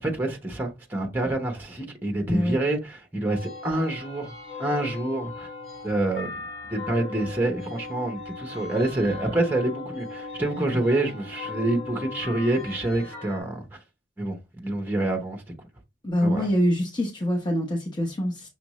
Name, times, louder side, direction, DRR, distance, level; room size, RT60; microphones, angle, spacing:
voice 1, 0.0-4.3 4.6-5.5 5.8-6.4 6.7-13.6 14.2-15.4 16.2-16.5, right 2 dB, 10° right, 0.8 m, -27 dB
voice 2, 2.3-2.6 10.7-10.8 16.0-18.5, equal, 25° left, 0.9 m, -25 dB
sound 1, 3.3-13.4, left 3 dB, 60° left, 2.2 m, -38 dB
6.2 x 2.6 x 3.0 m
head